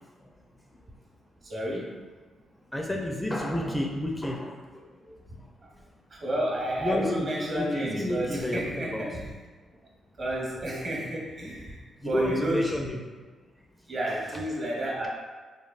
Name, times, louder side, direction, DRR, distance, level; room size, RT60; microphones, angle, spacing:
voice 1, 1.4-1.9 6.1-9.3 10.2-12.7 13.9-15.1, equal, 50° right, -3 dB, 0.9 m, -31 dB
voice 2, 2.7-5.5 6.8-9.0 12.0-13.0, left 1 dB, 10° left, 0 dB, 0.4 m, -31 dB
3.2 x 2.3 x 2.4 m, 1.4 s
supercardioid pair, 55°, 0 cm